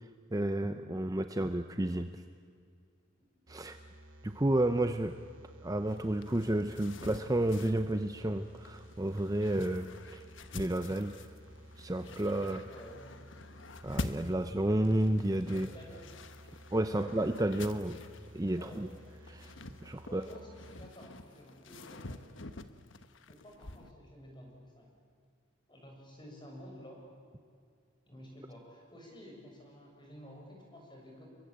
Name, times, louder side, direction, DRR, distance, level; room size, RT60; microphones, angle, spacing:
voice 1, 0.3-2.2 3.5-3.8 4.2-5.2 5.6-10.2 10.5-11.2 11.8-12.7 13.8-15.7 16.7-18.0 18.3-18.9 19.3-19.5 19.8-20.2, right 1 dB, 20° right, 9 dB, 0.7 m, -31 dB
sound 1, 3.5-20.9, equal, 80° right, 2.6 m, -54 dB
sound 2, 5.9-23.9, left 2 dB, 70° left, 1.3 m, -47 dB
voice 2, 12.7-13.1 15.5-16.1 16.9-17.1 18.6-18.9 20.1-22.3 23.3-24.9 25.7-27.0 28.1-31.2, equal, 25° left, 0 dB, 7.1 m, -51 dB
29.0 x 22.5 x 8.8 m, 2.2 s
head